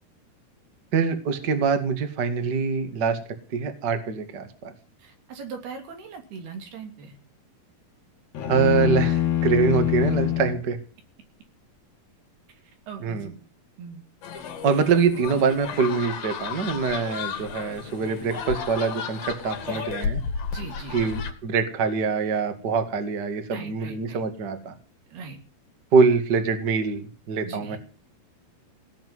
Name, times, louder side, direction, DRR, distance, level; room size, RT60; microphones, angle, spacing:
voice 1, 0.9-3.2 3.5-4.7 8.5-10.8 13.0-13.3 14.6-20.2 20.9-24.7 25.9-27.8, right 5 dB, 35° right, 7 dB, 2.1 m, -24 dB
voice 2, 5.0-7.2 12.9-13.4 13.8-14.0 19.7-19.9 20.5-21.1 23.5-24.2 25.1-25.4 27.4-27.8, right 5 dB, 85° right, 4 dB, 4.9 m, -40 dB
sound 1, 8.3-10.6, left 12 dB, 50° left, 2.5 m, -24 dB
sound 2, 14.2-21.3, left 6 dB, 75° left, 4.0 m, -33 dB
17.5 x 7.5 x 9.6 m, 0.37 s
omnidirectional pair, 4.4 m